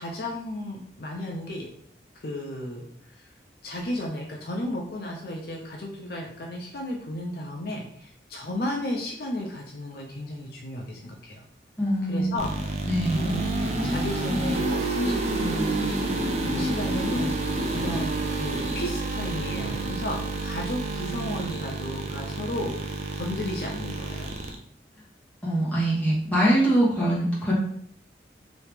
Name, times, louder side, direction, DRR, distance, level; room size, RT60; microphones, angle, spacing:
voice 1, 0.0-1.7 2.2-3.3 3.6-11.4 12.1-12.5 13.1-22.7 23.1-24.3, left 1 dB, 55° left, 0 dB, 0.5 m, -34 dB
voice 2, 11.8-12.4 12.9-13.3 25.4-27.5, right 1 dB, 10° left, -8 dB, 1.2 m, -23 dB
sound 1, 12.4-24.6, right 2 dB, 35° right, 0.4 m, -29 dB
3.0 x 2.8 x 3.4 m, 0.65 s
head